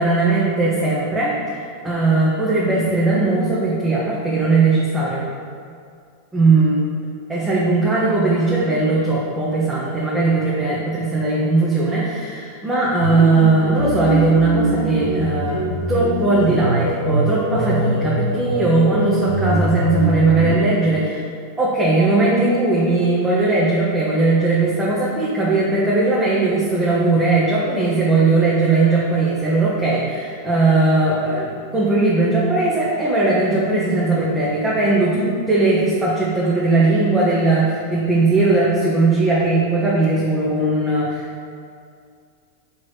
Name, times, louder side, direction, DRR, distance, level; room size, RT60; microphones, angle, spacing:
voice 1, 0.0-5.3 6.3-6.8 7.3-21.2 21.6-41.5, right 3 dB, 15° right, -7 dB, 1.1 m, -18 dB
sound 1, 13.0-20.6, right 1 dB, 80° left, 1.1 m, -23 dB
4.6 x 4.3 x 4.8 m, 2.3 s
figure-of-eight pair, 90°, 0 cm